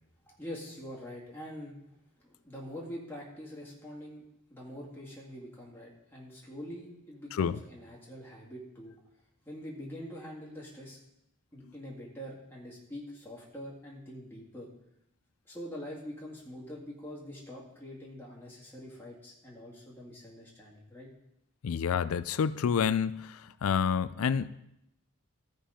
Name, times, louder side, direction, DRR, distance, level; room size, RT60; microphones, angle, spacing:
voice 1, 0.3-1.8 2.2-8.9 9.4-11.0 11.5-14.7 15.5-21.1, equal, 10° left, -5 dB, 2.0 m, -44 dB
voice 2, 21.6-24.5, left 7 dB, 75° left, 16 dB, 0.4 m, -28 dB
14.0 x 5.2 x 5.0 m, 0.81 s
head